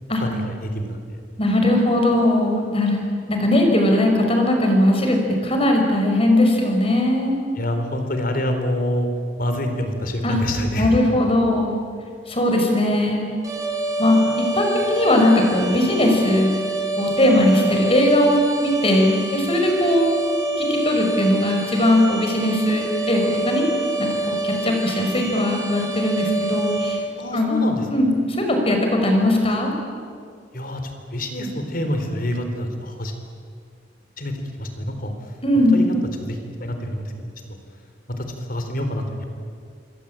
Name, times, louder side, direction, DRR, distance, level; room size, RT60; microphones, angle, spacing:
voice 1, 0.2-1.0 7.5-9.1 9.4-11.0 27.2-27.9 30.5-33.1 34.2-35.1 35.7-35.9 36.3-37.3 38.1-39.3, left 1 dB, 50° left, 6 dB, 4.0 m, -26 dB
voice 2, 1.4-7.3 10.2-10.4 10.8-11.8 12.3-13.3 14.0-16.6 17.0-20.1 20.6-23.6 24.0-27.0 27.3-29.7 35.4-35.8, left 1 dB, 30° left, 2 dB, 5.6 m, -19 dB
sound 1, 13.4-27.0, right 2 dB, 20° right, 6.2 m, -27 dB
27.0 x 23.0 x 8.9 m, 2.2 s
head